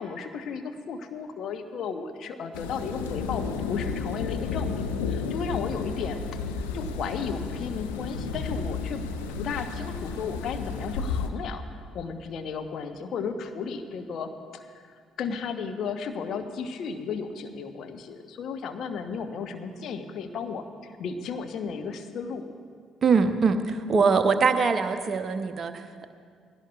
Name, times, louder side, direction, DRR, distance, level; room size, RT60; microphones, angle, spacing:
voice 1, 0.0-4.8 5.1-6.4 6.7-9.0 9.3-22.4, left 5 dB, 50° left, 7 dB, 1.0 m, -34 dB
sound 1, 2.5-11.3, left 5 dB, 70° left, 0.8 m, -32 dB
voice 2, 23.0-26.1, right 5 dB, 40° right, 8 dB, 0.8 m, -23 dB
20.0 x 16.0 x 2.4 m, 2.1 s
figure-of-eight pair, 50°, 0 cm